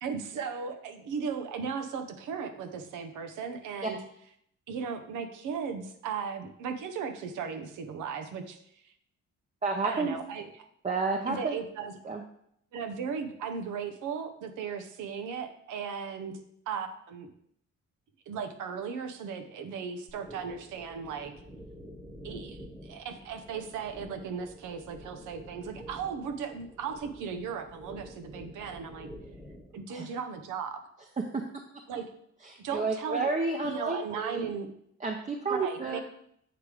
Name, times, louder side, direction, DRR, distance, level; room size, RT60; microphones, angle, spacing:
voice 1, 0.0-4.0 4.7-8.6 9.8-10.4 11.3-11.9 12.7-16.3 16.7-17.3 18.3-21.3 22.2-29.1 29.7-30.8 31.9-32.0 32.6-33.3 33.6-34.7 35.5-36.0, right 6 dB, 85° right, 7 dB, 0.9 m, -36 dB
voice 2, 9.6-10.2 10.8-11.6 12.0-12.2 29.9-30.1 31.3-31.4 32.4-34.5 35.0-36.0, right 3 dB, 25° right, 1 dB, 0.7 m, -31 dB
sound 1, 20.1-29.8, equal, 5° right, 1.1 m, -48 dB
7.9 x 3.3 x 4.9 m, 0.71 s
cardioid pair, 90°, 30 cm